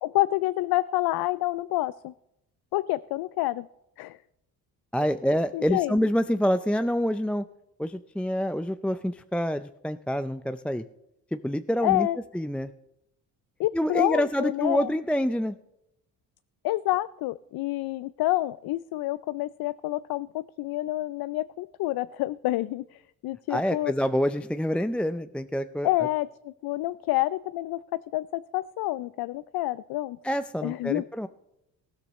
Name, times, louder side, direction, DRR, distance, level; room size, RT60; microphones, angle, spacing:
voice 1, 0.0-2.1 2.7-3.7 4.0-4.2 5.5-6.0 11.8-12.2 13.6-14.9 16.6-23.9 25.8-30.2 30.6-31.0, left 17 dB, 65° left, 16 dB, 0.5 m, -28 dB
voice 2, 4.9-7.5 7.8-10.8 11.3-12.1 12.3-12.7 13.7-15.6 23.5-25.9 30.2-31.3, equal, 5° left, 10 dB, 0.4 m, -27 dB
19.5 x 13.0 x 3.1 m, 0.86 s
supercardioid pair, 60°, 41 cm